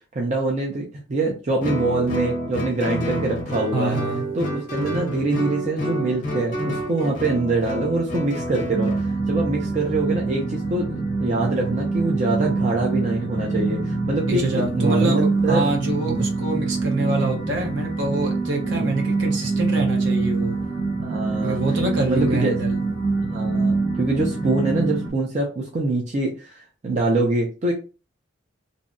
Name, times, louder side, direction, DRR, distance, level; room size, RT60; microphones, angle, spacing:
voice 1, 0.1-4.0 4.3-15.7 16.0-16.2 18.6-18.9 21.0-21.6 22.1-22.6 23.2-27.7, right 2 dB, 35° right, 0.4 m, -24 dB
Guitar, 1.6-9.1, equal, 40° left, 0.6 m, -28 dB
voice 2, 3.7-4.2 14.3-20.6 21.4-22.8, right 2 dB, 65° right, 0.7 m, -26 dB
sound 1, 8.7-25.1, right 3 dB, 10° right, 0.8 m, -25 dB
2.6 x 2.1 x 2.5 m
head